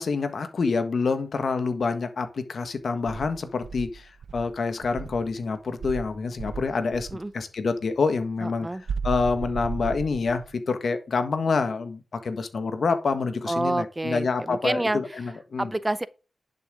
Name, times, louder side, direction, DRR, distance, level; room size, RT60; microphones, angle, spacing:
voice 1, 0.0-7.1 7.3-8.7 9.0-15.7, left 4 dB, 70° left, 1.6 m, -27 dB
Insect, 3.0-5.3 5.8-7.2 8.9-10.5, right 5 dB, 80° right, 0.7 m, -35 dB
voice 2, 8.4-8.8 13.5-15.0 15.6-16.1, right 2 dB, 20° right, 0.7 m, -28 dB
11.0 x 6.8 x 3.8 m
cardioid pair, 45°, 0 cm